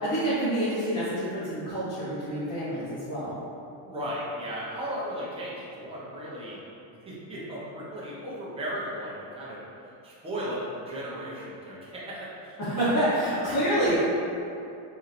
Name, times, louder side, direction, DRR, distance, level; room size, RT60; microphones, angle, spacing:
voice 1, 0.0-3.3 12.6-14.0, right 1 dB, 40° left, -14 dB, 1.2 m, -27 dB
voice 2, 3.8-6.6 7.0-9.6 10.0-12.6 13.4-13.6, equal, 10° right, -7 dB, 0.7 m, -36 dB
4.2 x 2.8 x 2.5 m, 2.6 s
cardioid pair, 125°, 48 cm